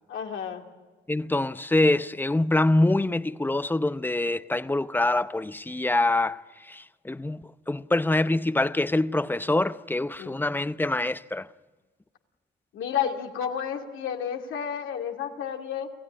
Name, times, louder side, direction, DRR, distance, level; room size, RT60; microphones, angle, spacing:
voice 1, 0.1-0.6 10.2-10.4 12.7-15.9, left 8 dB, 80° left, 2.5 m, -31 dB
voice 2, 1.1-11.5, left 2 dB, 10° left, 0.7 m, -25 dB
28.5 x 16.0 x 9.9 m
cardioid pair, 90°, 20 cm